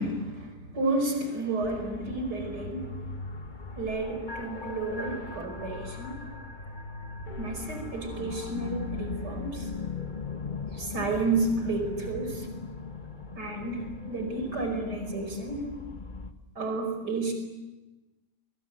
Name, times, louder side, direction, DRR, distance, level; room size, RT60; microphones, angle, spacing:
voice 1, 0.0-2.9 3.8-6.3 7.4-9.7 10.7-12.5 13.4-15.8 16.6-17.3, right 2 dB, 70° right, 5 dB, 5.9 m, -31 dB
sound 1, 1.6-16.3, left 4 dB, 30° left, 1.5 m, -39 dB
28.5 x 25.0 x 8.0 m, 1.1 s
omnidirectional pair, 1.9 m